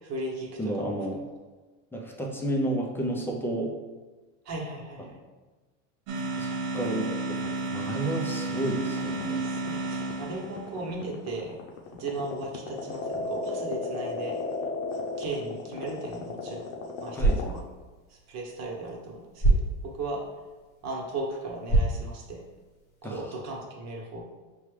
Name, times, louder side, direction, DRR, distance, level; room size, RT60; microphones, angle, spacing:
voice 1, 0.0-0.5 0.8-1.0 4.4-5.2 9.4-11.6 12.0-14.4 15.2-16.6 17.0-17.6 18.1-19.6 19.8-20.2 20.8-22.4 23.0-24.2, right 2 dB, 45° right, -1 dB, 1.2 m, -36 dB
voice 2, 0.6-1.2 1.9-3.7 6.4-9.4 17.1-17.6 23.0-23.2, right 1 dB, 5° left, -1 dB, 0.6 m, -31 dB
sound 1, 6.1-10.8, right 2 dB, 80° right, 1.0 m, -32 dB
sound 2, 8.6-17.6, left 3 dB, 60° left, 0.8 m, -34 dB
sound 3, 17.0-23.0, right 2 dB, 25° left, 1.0 m, -30 dB
5.5 x 2.4 x 3.2 m, 1.3 s
supercardioid pair, 115°, 37 cm